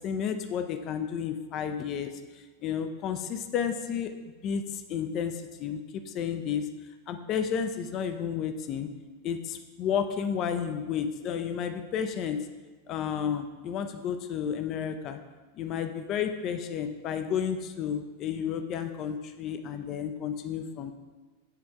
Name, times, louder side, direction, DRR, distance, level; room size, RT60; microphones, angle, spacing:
voice 1, 0.0-4.1 4.4-6.7 7.1-8.9 9.2-12.5 12.9-15.2 15.6-20.9, left 8 dB, 35° left, 7 dB, 0.4 m, -32 dB
7.5 x 3.4 x 4.5 m, 1.3 s
figure-of-eight pair, 90°, 0 cm